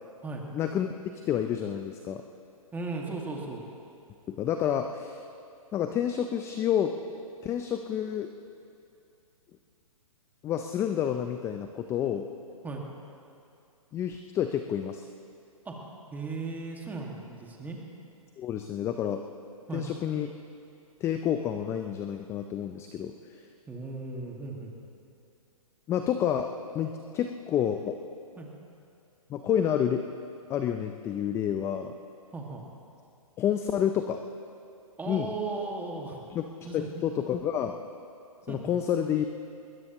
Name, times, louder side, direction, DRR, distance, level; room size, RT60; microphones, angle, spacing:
voice 1, 0.5-1.0 1.3-2.2 4.3-5.2 5.7-6.9 7.4-8.3 10.4-12.3 13.9-15.0 18.4-19.2 19.7-20.3 21.0-23.1 25.9-26.5 26.7-28.0 29.3-30.0 30.5-31.9 33.4-34.2 35.1-35.3 36.3-36.4 36.7-37.8 38.5-39.3, left 9 dB, 15° left, 7 dB, 0.4 m, -29 dB
voice 2, 2.7-3.7 12.6-12.8 15.7-15.8 16.1-17.8 19.7-19.9 23.7-24.7 28.4-28.5 32.3-32.6 35.0-36.2 36.6-37.0 38.5-38.7, right 3 dB, 10° right, -1 dB, 1.9 m, -36 dB
20.5 x 19.0 x 3.0 m, 2.6 s
hypercardioid pair, 135°, 18 cm